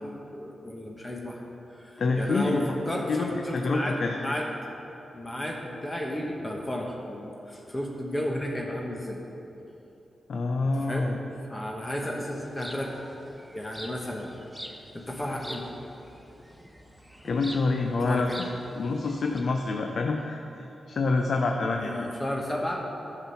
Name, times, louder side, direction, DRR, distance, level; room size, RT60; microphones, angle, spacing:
voice 1, 0.0-1.4 1.7-4.5 5.1-9.2 10.7-11.1 11.5-12.9 13.5-14.3 14.9-15.7 18.0-18.4 21.8-22.8, left 1 dB, 20° left, -1 dB, 1.2 m, -33 dB
voice 2, 2.0-2.7 3.1-4.3 10.3-11.2 17.2-18.5 18.8-22.1, left 3 dB, 65° left, 3 dB, 0.6 m, -27 dB
sound 1, 12.3-19.4, equal, ahead, 1.0 m, -45 dB
11.0 x 6.1 x 5.7 m, 3.0 s
cardioid pair, 70°, 0 cm